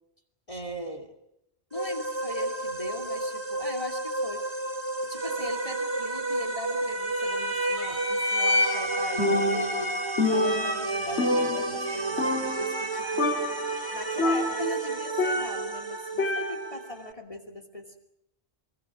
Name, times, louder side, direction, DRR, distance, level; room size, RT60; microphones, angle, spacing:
voice 1, 0.5-1.1 1.7-4.5 5.0-10.0 10.2-13.3 13.9-18.0, left 1 dB, 30° left, 5 dB, 2.8 m, -39 dB
sound 1, 1.7-17.1, right 3 dB, 25° right, 1.2 m, -32 dB
sound 2, 7.0-15.1, left 2 dB, 50° left, 8.0 m, -32 dB
Percussion, 9.2-9.9 10.2-11.9 12.2-12.9 13.2-13.7 14.2-15.8 16.2-16.9, left 2 dB, 85° left, 3.4 m, -27 dB
25.0 x 24.5 x 6.2 m, 0.81 s
omnidirectional pair, 1.1 m